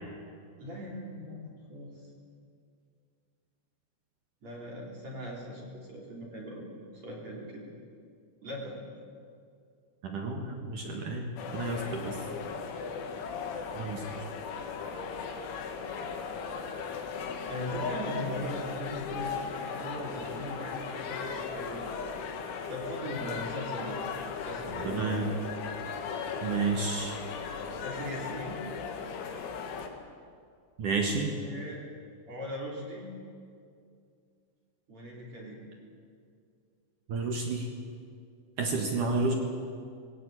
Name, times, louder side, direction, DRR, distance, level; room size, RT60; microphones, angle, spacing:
voice 1, 0.6-2.0 4.4-7.6 8.4-8.8 12.1-12.2 17.5-22.1 22.5-24.0 24.4-25.5 27.8-28.6 31.4-31.8 32.3-33.1 34.9-35.6, equal, 35° right, -3 dB, 4.3 m, -40 dB
voice 2, 10.0-12.1 13.8-14.0 24.7-25.3 26.4-27.2 30.8-31.3 37.1-37.7 38.6-39.3, right 3 dB, 60° right, 2 dB, 2.3 m, -31 dB
sound 1, 11.4-29.9, left 5 dB, 70° left, 4.0 m, -37 dB
21.0 x 18.0 x 9.0 m, 2.3 s
omnidirectional pair, 5.8 m